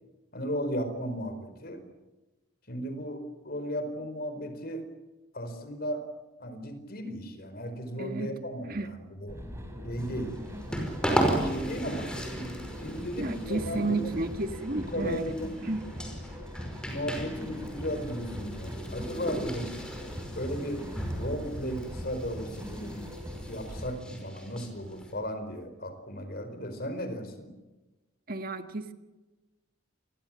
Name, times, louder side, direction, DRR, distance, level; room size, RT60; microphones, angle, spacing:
voice 1, 0.3-1.8 2.7-4.9 5.3-6.1 6.4-9.4 9.8-10.4 10.7-12.1 12.8-14.2 14.9-15.6 16.8-19.8 20.4-23.1 23.4-27.5, equal, 45° left, 9 dB, 4.7 m, -35 dB
voice 2, 8.0-8.3 8.7-8.9 13.2-15.3 15.6-15.9 28.3-28.9, right 2 dB, 45° right, 8 dB, 1.7 m, -32 dB
sound 1, 9.3-23.9, equal, 15° right, 4.7 m, -41 dB
sound 2, 10.0-25.1, equal, 5° left, 5.3 m, -36 dB
28.0 x 21.5 x 7.6 m, 1.1 s
head